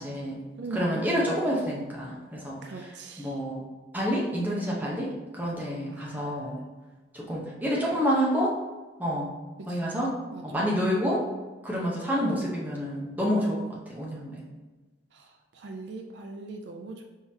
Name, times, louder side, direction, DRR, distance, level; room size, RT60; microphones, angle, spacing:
voice 1, 0.0-0.4 0.7-2.9 3.2-3.6 3.9-6.6 7.1-8.5 9.0-9.3 9.7-10.1 10.4-11.2 11.6-14.4, equal, 10° right, -5 dB, 0.8 m, -28 dB
voice 2, 0.6-1.4 2.6-3.4 5.9-6.4 9.6-10.8 15.1-17.0, right 3 dB, 65° right, 3 dB, 0.4 m, -41 dB
4.5 x 3.6 x 2.8 m, 1.3 s
head